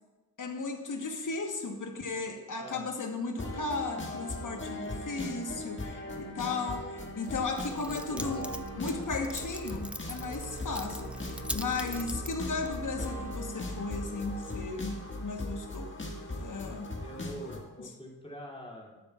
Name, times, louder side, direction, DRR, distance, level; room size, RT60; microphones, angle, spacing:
voice 1, 0.4-8.5 8.7-15.9 16.3-16.9 17.8-17.9, left 3 dB, 55° left, 4 dB, 1.2 m, -35 dB
sound 1, 3.4-17.6, left 1 dB, 30° left, 1.7 m, -39 dB
Keys jangling, 7.3-13.3, equal, 5° right, 0.4 m, -44 dB
voice 2, 7.6-8.5 17.0-19.0, equal, 15° left, -3 dB, 2.5 m, -44 dB
sound 2, 10.2-15.8, right 4 dB, 70° right, 0.8 m, -52 dB
11.5 x 9.6 x 2.3 m, 1.2 s
cardioid pair, 55°, 38 cm